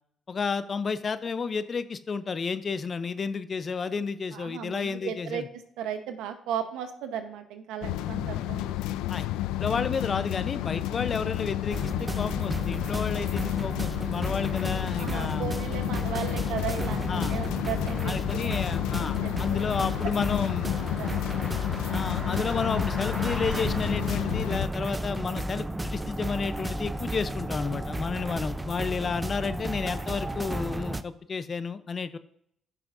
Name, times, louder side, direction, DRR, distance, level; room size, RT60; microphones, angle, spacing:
voice 1, 0.3-5.5 9.1-9.3 9.6-15.5 17.1-17.4 18.0-20.8 21.9-32.2, left 5 dB, 45° left, 13 dB, 0.6 m, -31 dB
voice 2, 4.3-5.4 5.8-8.8 15.0-18.5 19.2-19.6 21.0-21.3, right 8 dB, 85° right, 8 dB, 0.9 m, -35 dB
sound 1, 7.8-24.7, left 14 dB, 85° left, 0.3 m, -31 dB
sound 2, 11.7-31.0, right 1 dB, 15° right, 0.6 m, -33 dB
14.0 x 6.0 x 2.6 m, 0.71 s
supercardioid pair, 65°, 0 cm